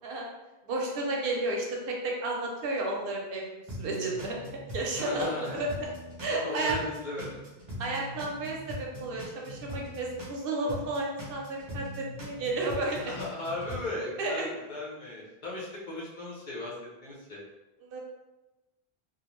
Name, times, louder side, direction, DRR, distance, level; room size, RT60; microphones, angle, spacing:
voice 1, 0.7-3.4 3.8-4.4 4.7-5.9 6.2-6.8 7.8-13.0 14.2-14.5 17.8-18.0, right 2 dB, 70° right, -1 dB, 0.7 m, -32 dB
sound 1, 3.7-6.4 6.7-10.4 10.7-13.9, equal, 30° right, 0.7 m, -41 dB
voice 2, 5.0-5.6 6.3-7.4 13.1-16.7 17.0-17.4, left 2 dB, 55° left, -5 dB, 0.8 m, -36 dB
2.4 x 2.1 x 2.9 m, 1.0 s
omnidirectional pair, 1.0 m